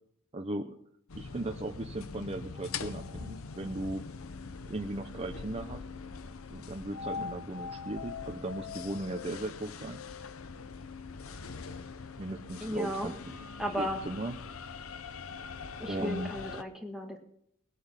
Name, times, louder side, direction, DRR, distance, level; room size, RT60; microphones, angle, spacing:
voice 1, 0.3-0.7 1.1-4.0 4.7-5.8 6.5-10.0 12.2-13.3 13.8-14.4 15.9-16.3, right 2 dB, 30° right, 4 dB, 0.7 m, -37 dB
sound 1, 1.1-16.6, left 5 dB, 75° left, 0.8 m, -42 dB
voice 2, 12.6-13.1 13.6-14.0 15.8-17.2, equal, ahead, 2 dB, 1.8 m, -35 dB
20.0 x 8.5 x 5.7 m, 0.69 s
head